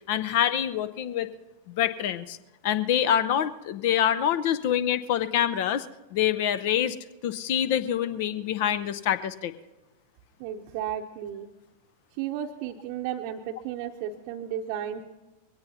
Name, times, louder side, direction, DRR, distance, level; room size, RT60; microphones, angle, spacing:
voice 1, 0.1-1.3 1.8-2.4 2.6-5.9 6.1-7.0 7.2-9.5, left 10 dB, 50° left, 14 dB, 0.6 m, -26 dB
voice 2, 10.4-11.5 12.2-15.0, right 10 dB, 45° right, 1 dB, 0.8 m, -33 dB
22.0 x 17.5 x 2.8 m, 1.1 s
figure-of-eight pair, 90°, 0 cm